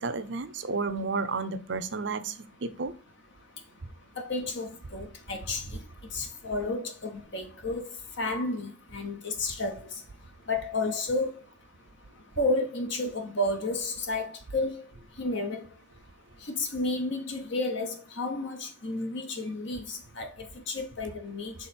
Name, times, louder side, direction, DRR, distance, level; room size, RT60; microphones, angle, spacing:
voice 1, 0.0-2.3 2.6-2.9, right 4 dB, 55° right, 0.6 m, -31 dB
voice 2, 4.2-5.6 6.1-7.9 8.2-9.8 10.5-11.3 12.4-14.8 15.2-15.7 16.4-21.5, left 2 dB, 55° left, 1.0 m, -31 dB
5.9 x 3.7 x 4.3 m
head